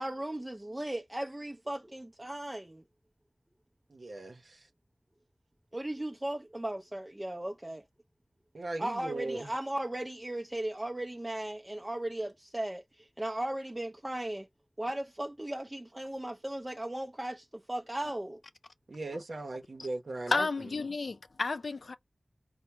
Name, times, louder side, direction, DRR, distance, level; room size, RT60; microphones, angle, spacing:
voice 1, 0.0-2.8 5.7-7.8 8.8-14.5 14.8-18.4, right 1 dB, 25° right, 0.5 m, -36 dB
voice 2, 3.9-4.7 8.5-9.5 18.9-20.5, right 2 dB, 85° right, 0.7 m, -38 dB
voice 3, 20.3-21.9, left 3 dB, 85° left, 0.4 m, -32 dB
4.4 x 2.0 x 4.3 m
wide cardioid pair, 40°, 0 cm